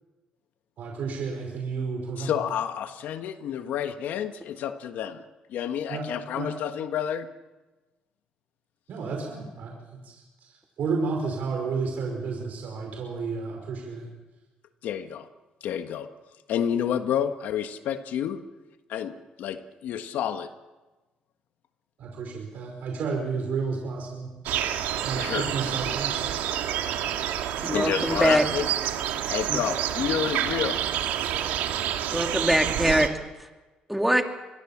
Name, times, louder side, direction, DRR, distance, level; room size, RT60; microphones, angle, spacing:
voice 1, 0.8-2.4 5.9-6.0 6.3-6.5 8.9-14.1 22.0-24.3 25.0-26.1 32.6-32.8, right 4 dB, 65° right, 1 dB, 5.3 m, -31 dB
voice 2, 2.2-5.2 5.5-7.3 14.8-15.3 15.6-16.1 16.5-18.4 18.9-20.5 25.1-25.5 27.6-28.7 29.3-30.8, left 9 dB, 75° left, 8 dB, 1.5 m, -29 dB
sound 1, 24.5-33.1, right 10 dB, 90° right, 1.9 m, -28 dB
voice 3, 27.6-28.4 29.5-29.6 32.1-33.1 33.9-34.2, right 1 dB, 5° right, 4 dB, 2.7 m, -23 dB
25.0 x 21.5 x 7.4 m, 1.2 s
cardioid pair, 95°, 3 cm